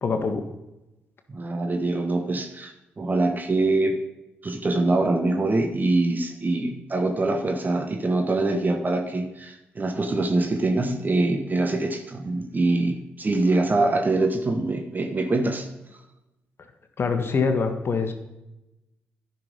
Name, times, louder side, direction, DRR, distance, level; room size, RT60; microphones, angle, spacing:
voice 1, 0.0-0.4 17.0-18.1, left 4 dB, 50° left, 7 dB, 1.4 m, -24 dB
voice 2, 1.3-4.0 4.4-15.7, right 2 dB, 35° right, 5 dB, 1.2 m, -24 dB
11.0 x 5.9 x 5.3 m, 0.94 s
hypercardioid pair, 45°, 5 cm